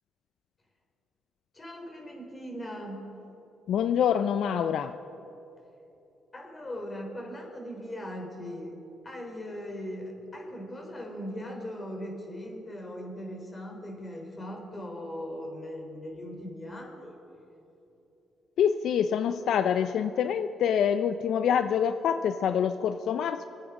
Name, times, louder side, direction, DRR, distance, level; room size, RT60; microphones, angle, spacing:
voice 1, 1.5-3.1 6.3-17.2, equal, 25° left, 1 dB, 3.9 m, -39 dB
voice 2, 3.7-4.9 18.6-23.4, left 8 dB, 70° left, 10 dB, 0.5 m, -26 dB
25.5 x 9.2 x 5.2 m, 3.0 s
cardioid pair, 90°, 0 cm